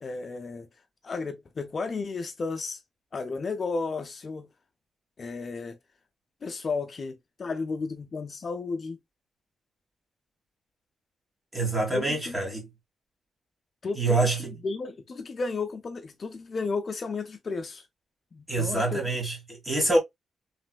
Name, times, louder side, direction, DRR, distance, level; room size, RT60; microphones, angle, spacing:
voice 1, 0.0-0.7 1.0-2.8 3.1-4.5 5.2-5.8 6.4-9.0 11.9-12.3 13.8-14.3 14.6-17.9 18.3-19.0, left 4 dB, 40° left, 0.4 m, -33 dB
voice 2, 11.5-12.7 14.0-14.5 18.5-20.0, right 2 dB, 15° right, 1.7 m, -26 dB
3.1 x 3.0 x 2.2 m
cardioid pair, 120°, 0 cm